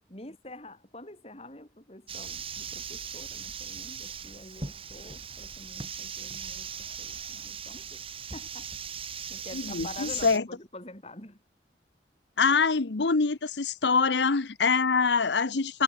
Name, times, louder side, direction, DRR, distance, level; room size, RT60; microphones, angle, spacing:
voice 1, 0.1-8.0 8.3-8.7 9.3-11.4, left 2 dB, 35° left, 5.9 m, -47 dB
sound 1, 2.1-10.4, right 7 dB, 30° right, 3.3 m, -39 dB
voice 2, 9.5-10.4 12.4-15.8, left 4 dB, 80° left, 0.9 m, -25 dB
head